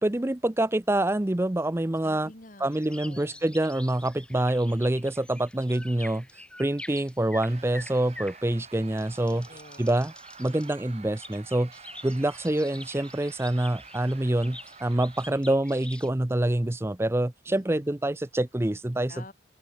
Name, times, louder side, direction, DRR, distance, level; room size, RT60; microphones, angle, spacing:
voice 1, 0.0-2.3 2.6-9.5 9.8-10.1 10.4-19.1, right 1 dB, 15° right, 0.5 m, -26 dB
voice 2, 2.0-3.4 9.3-9.9 17.5-17.8 19.1-19.3, left 2 dB, 45° left, 2.6 m, -49 dB
sound 1, 2.7-16.1, left 1 dB, 5° left, 1.8 m, -46 dB
sound 2, 7.4-15.3, right 5 dB, 35° right, 4.1 m, -50 dB
open air
head